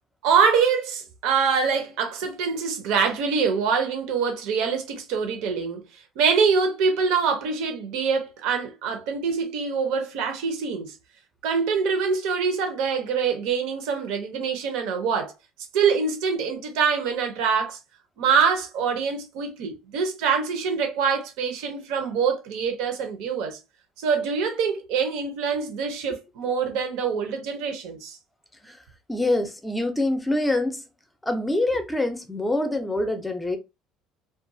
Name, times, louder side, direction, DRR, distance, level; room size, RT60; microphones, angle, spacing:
voice 1, 0.2-5.8 6.2-11.0 11.4-15.3 15.7-17.8 18.2-23.6 24.0-28.2, right 6 dB, 80° right, 0.8 m, -24 dB
voice 2, 29.1-30.8 31.2-33.6, left 2 dB, 5° left, 0.6 m, -25 dB
2.5 x 2.3 x 2.6 m
cardioid pair, 125°, 0 cm